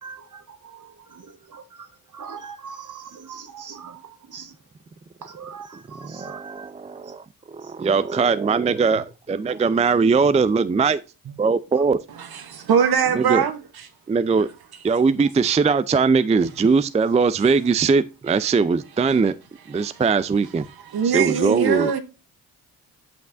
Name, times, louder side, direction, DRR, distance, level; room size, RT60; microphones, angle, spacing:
voice 1, 0.0-4.5 5.2-6.7 7.0-7.1 7.6-7.7 11.2-11.3 12.5-12.6 16.4-16.5, right 6 dB, 50° right, 1.3 m, -41 dB
voice 2, 6.1-11.0 11.4-12.0 13.1-13.4 14.1-14.5 14.8-19.3 19.7-20.6 21.1-21.9, right 5 dB, 20° right, 0.4 m, -20 dB
voice 3, 12.2-13.9 19.8-20.0 20.9-22.0, right 7 dB, 70° right, 1.0 m, -22 dB
8.3 x 5.2 x 2.5 m
supercardioid pair, 55°, 39 cm